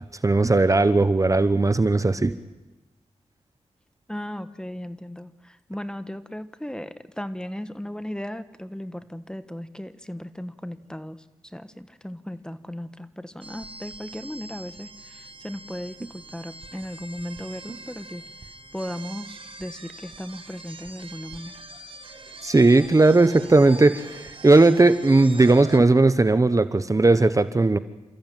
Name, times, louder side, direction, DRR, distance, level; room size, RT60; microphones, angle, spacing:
voice 1, 0.2-2.3 22.4-27.8, right 2 dB, 25° right, 12 dB, 1.0 m, -17 dB
voice 2, 4.1-11.2 11.5-18.2 18.7-21.6, left 1 dB, 5° left, 12 dB, 1.2 m, -36 dB
sound 1, 13.4-25.8, right 3 dB, 45° right, 1.8 m, -43 dB
29.0 x 14.0 x 9.1 m, 1.1 s
cardioid pair, 75°, 12 cm